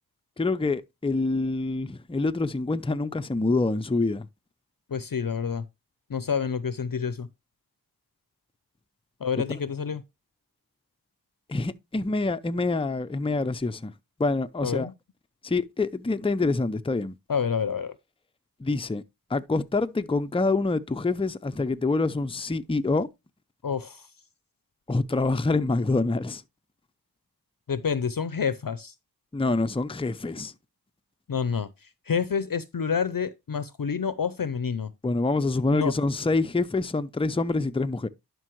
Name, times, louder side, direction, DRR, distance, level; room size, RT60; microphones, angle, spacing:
voice 1, 0.4-4.3 11.5-13.9 14.2-14.9 15.4-17.1 18.6-19.0 19.3-23.1 24.9-26.4 29.3-30.5 35.0-38.1, left 3 dB, 15° left, 0.5 m, -26 dB
voice 2, 4.9-5.7 6.1-7.3 9.2-10.0 14.6-14.9 17.3-18.0 23.6-24.1 27.7-28.9 31.3-34.9 35.7-35.9, left 6 dB, 60° left, 0.6 m, -28 dB
11.0 x 5.3 x 3.0 m
wide cardioid pair, 50°, 39 cm